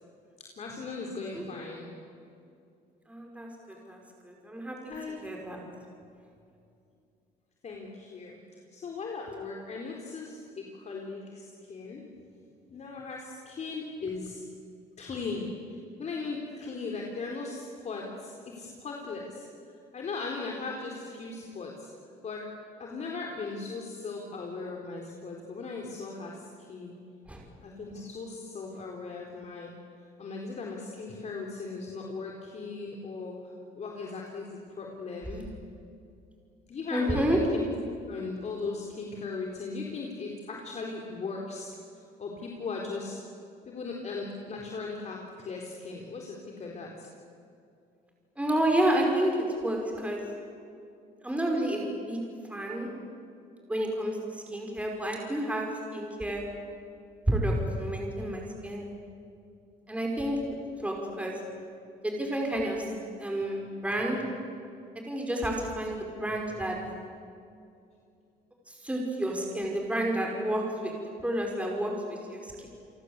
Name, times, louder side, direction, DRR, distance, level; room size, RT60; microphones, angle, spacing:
voice 1, 0.4-2.1 3.7-4.0 4.9-5.2 7.6-8.4 8.7-12.0 12.7-14.4 15.0-15.6 16.0-19.5 19.9-21.9 22.2-22.5 22.8-27.0 27.6-29.7 30.2-33.3 33.7-35.5 36.7-37.7 38.1-41.7 42.2-43.2 43.7-47.1, left 4 dB, 40° left, 0 dB, 4.1 m, -38 dB
voice 2, 1.0-1.4 3.1-5.6 27.3-27.4 36.9-37.4 48.4-50.2 51.2-52.2 52.5-52.9 53.7-56.4 57.3-58.8 59.9-60.4 60.8-61.4 62.0-62.9 63.2-64.2 65.0-66.8 68.7-72.7, right 1 dB, 5° right, 0 dB, 5.5 m, -30 dB
30.0 x 24.0 x 8.2 m, 2.5 s
cardioid pair, 110°, 17 cm